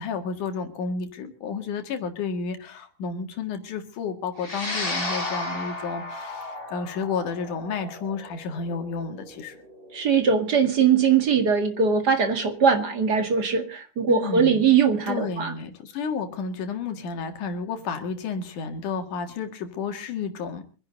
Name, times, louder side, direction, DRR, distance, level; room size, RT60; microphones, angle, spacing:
voice 1, 0.0-9.6 14.1-14.6 15.1-20.7, left 5 dB, 75° left, 6 dB, 3.3 m, -31 dB
sound 1, 4.4-12.9, left 2 dB, 15° left, 4.1 m, -35 dB
voice 2, 9.9-15.5, right 6 dB, 40° right, 7 dB, 1.9 m, -21 dB
25.0 x 10.5 x 4.0 m, 0.38 s
omnidirectional pair, 3.6 m